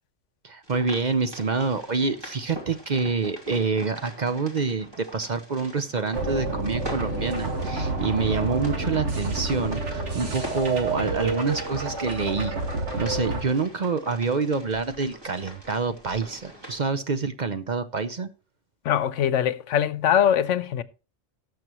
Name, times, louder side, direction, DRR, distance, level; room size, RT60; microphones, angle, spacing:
voice 1, 0.4-12.5 13.0-18.3, right 4 dB, 45° right, 0.7 m, -27 dB
sound 1, 0.6-16.9, equal, 20° right, 2.9 m, -43 dB
sound 2, 6.1-13.4, right 2 dB, 70° right, 2.3 m, -29 dB
voice 2, 18.8-20.8, left 9 dB, 80° left, 1.0 m, -22 dB
18.5 x 6.8 x 3.0 m
omnidirectional pair, 1.2 m